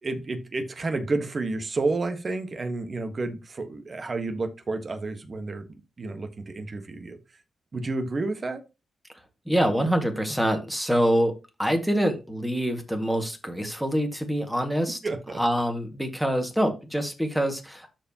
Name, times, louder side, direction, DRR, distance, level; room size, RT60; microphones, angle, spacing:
voice 1, 0.0-5.6 6.0-7.2 7.7-8.6 15.0-15.4, right 3 dB, 40° right, 1.4 m, -30 dB
voice 2, 9.5-15.0 15.4-17.9, equal, ahead, 1.9 m, -25 dB
13.0 x 4.6 x 2.9 m
cardioid pair, 95°, 0 cm